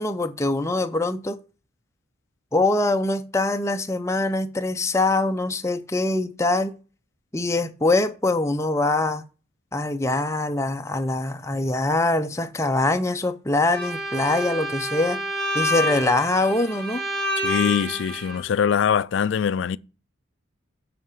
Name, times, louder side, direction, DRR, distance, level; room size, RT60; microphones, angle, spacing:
voice 1, 0.0-1.4 2.5-6.8 7.3-9.2 9.7-15.2 15.5-17.0, left 2 dB, 15° left, 0.6 m, -23 dB
Bowed string instrument, 13.7-18.4, equal, 50° right, 2.1 m, -28 dB
voice 2, 17.4-19.8, left 7 dB, 65° left, 0.3 m, -23 dB
7.8 x 4.8 x 6.5 m
head